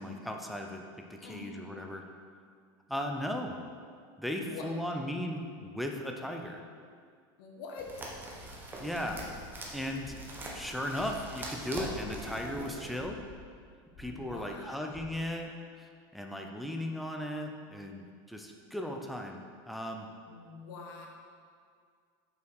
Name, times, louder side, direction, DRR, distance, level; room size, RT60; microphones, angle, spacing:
voice 1, 0.0-2.0 2.9-3.6 4.2-6.6 8.8-9.2 9.7-10.2 10.5-13.2 14.0-19.4 19.6-20.1, left 1 dB, ahead, 2 dB, 0.5 m, -37 dB
voice 2, 1.2-1.6 4.4-4.8 7.4-7.9 14.1-15.0 20.3-21.1, left 4 dB, 75° left, 0 dB, 1.4 m, -45 dB
sound 1, 7.8-12.9, right 1 dB, 15° right, 1.0 m, -43 dB
sound 2, 8.4-8.6 9.0-10.5 10.9-11.5 11.9-12.4 12.9-13.6 13.9-14.5 14.8-15.0, left 2 dB, 40° left, 1.6 m, -52 dB
6.2 x 5.8 x 4.7 m, 2.1 s
supercardioid pair, 150°, 12 cm